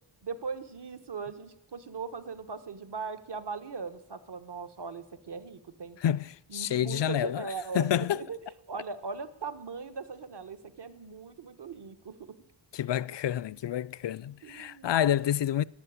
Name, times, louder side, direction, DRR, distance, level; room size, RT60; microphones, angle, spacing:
voice 1, 0.2-6.0 6.5-12.3 14.4-15.0, right 5 dB, 55° right, 1.4 m, -39 dB
voice 2, 6.0-7.5 7.7-8.2 12.7-15.6, left 10 dB, 60° left, 0.5 m, -28 dB
12.0 x 12.0 x 9.5 m
wide cardioid pair, 70°, 49 cm